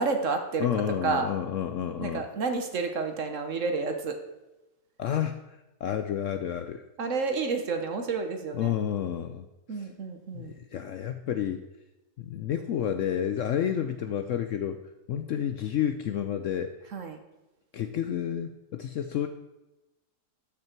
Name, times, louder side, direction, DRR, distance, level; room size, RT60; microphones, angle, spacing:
voice 1, 0.0-1.3 2.0-4.2 7.0-8.7 9.7-10.6 16.9-17.2, right 4 dB, 55° right, 6 dB, 1.3 m, -30 dB
voice 2, 0.6-2.2 5.0-6.8 8.5-9.9 10.3-11.6 12.2-14.8 15.1-16.7 17.7-19.3, left 9 dB, 70° left, 8 dB, 0.8 m, -30 dB
13.0 x 6.0 x 4.4 m, 1.0 s
omnidirectional pair, 1.7 m